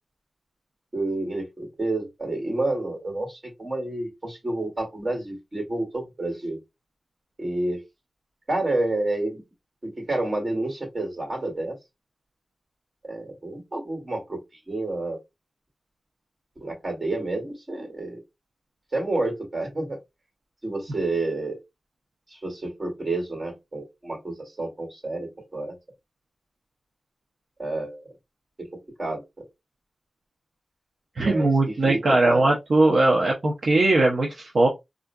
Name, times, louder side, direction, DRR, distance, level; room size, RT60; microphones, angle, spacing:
voice 1, 0.9-6.6 7.4-7.8 8.5-9.4 9.8-11.8 13.0-14.4 14.7-15.2 16.6-18.2 18.9-20.0 20.6-21.6 22.3-25.8 27.6-28.0 28.6-29.4 31.2-32.4, right 2 dB, 40° right, 2.1 m, -29 dB
voice 2, 31.2-34.7, right 2 dB, 70° right, 0.6 m, -20 dB
3.6 x 2.5 x 2.2 m
wide cardioid pair, 90°, 0 cm